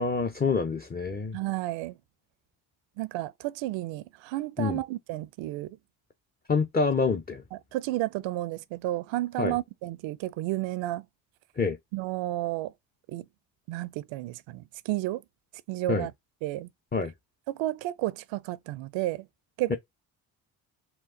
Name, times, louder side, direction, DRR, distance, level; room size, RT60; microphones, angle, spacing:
voice 1, 0.0-1.4 4.6-4.8 6.5-7.4 9.4-9.6 11.6-11.8 15.9-16.1 16.9-17.1 19.7-19.8, left 4 dB, 20° left, 0.6 m, -26 dB
voice 2, 1.3-1.9 3.0-5.8 7.7-11.0 11.9-12.7 13.1-13.3 13.7-15.2 15.7-16.1 16.4-16.7 17.5-19.3 19.6-19.8, right 16 dB, 75° right, 0.6 m, -32 dB
4.4 x 2.3 x 3.7 m
supercardioid pair, 70°, 46 cm